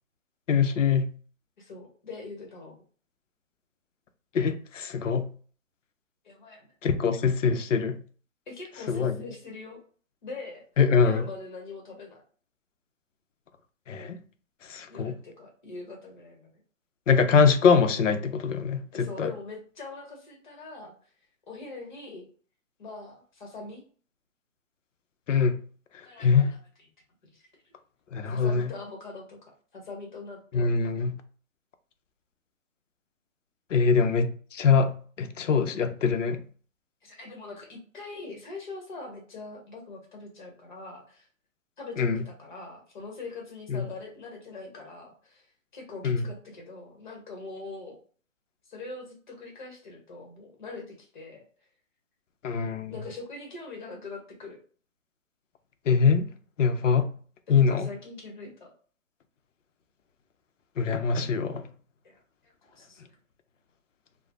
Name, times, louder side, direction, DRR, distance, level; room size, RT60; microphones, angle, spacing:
voice 1, 0.5-1.1 4.3-5.3 6.8-8.0 8.9-9.1 10.8-11.2 13.9-14.2 14.7-15.1 17.1-19.3 25.3-25.6 26.2-26.5 28.1-28.7 30.5-31.1 33.7-36.4 42.0-42.2 43.7-43.8 46.0-46.2 52.4-52.9 55.9-56.3 56.6-57.1 57.5-57.9 60.8-61.6, left 5 dB, 65° left, 0.5 m, -23 dB
voice 2, 1.6-2.8 6.2-6.7 8.5-9.8 10.2-10.6 11.0-12.2 14.9-16.5 18.9-20.9 21.5-22.2 22.8-23.8 26.0-26.4 27.3-27.5 28.3-31.0 37.0-41.3 41.8-48.0 48.7-51.4 52.9-54.6 57.5-58.7 62.0-63.1, left 3 dB, 35° left, 0.9 m, -42 dB
3.1 x 2.0 x 2.5 m
hypercardioid pair, 155°, 41 cm